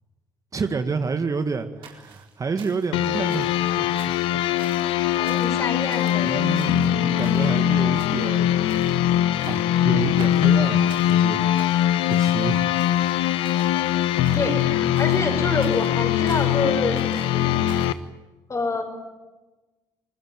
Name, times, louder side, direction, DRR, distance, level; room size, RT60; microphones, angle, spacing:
voice 1, 0.5-3.9 6.2-8.6 8.9-9.1 9.5-11.4 11.8-13.0, right 4 dB, 35° right, 8 dB, 1.9 m, -29 dB
sound 1, 1.8-3.0 3.3-3.6 3.9-4.2 4.6-5.0 5.3-5.6 5.9-6.2 6.5-7.6 7.9-8.4 8.7-9.0 9.4-9.8 10.2-11.2 11.5-12.5 12.8-13.8 14.2-14.6 14.9-16.6 16.9-18.0, right 7 dB, 70° right, 4.1 m, -47 dB
sound 2, 2.9-17.9, left 11 dB, 75° left, 1.0 m, -21 dB
voice 2, 5.1-6.8 14.3-17.7 18.5-18.8, left 3 dB, 35° left, 5 dB, 6.4 m, -27 dB
25.5 x 20.5 x 9.2 m, 1.1 s
hypercardioid pair, 55°, 9 cm